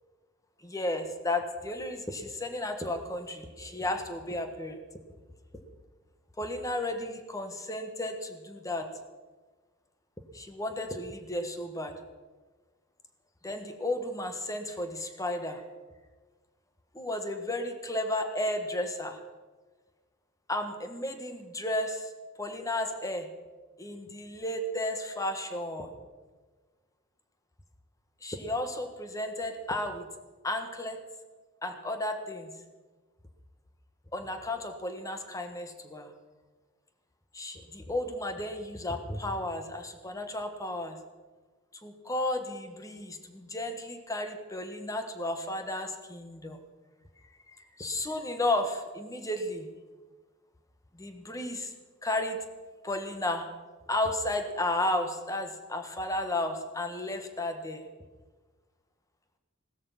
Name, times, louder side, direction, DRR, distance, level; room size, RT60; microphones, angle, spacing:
voice 1, 0.6-4.8 5.5-5.6 6.4-8.9 10.3-11.9 13.4-15.6 16.9-19.2 20.5-22.1 22.4-23.3 23.8-25.9 28.2-30.1 30.4-31.0 31.6-32.5 34.1-36.1 37.3-41.0 41.8-46.6 47.5-49.7 50.9-51.7 52.0-52.4 52.8-53.5 53.9-57.9, left 1 dB, 15° left, 7 dB, 1.4 m, -33 dB
17.0 x 13.0 x 5.7 m, 1.3 s
head